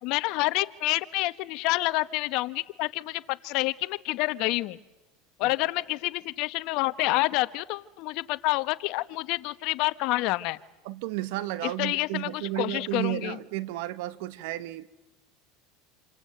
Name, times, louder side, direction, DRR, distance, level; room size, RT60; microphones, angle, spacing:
voice 1, 0.0-4.8 5.4-10.6 11.6-13.4, left 20 dB, 60° left, 1.0 m, -28 dB
voice 2, 10.8-14.9, right 16 dB, 70° right, 1.2 m, -32 dB
28.5 x 25.5 x 7.8 m
supercardioid pair, 115°, 0 cm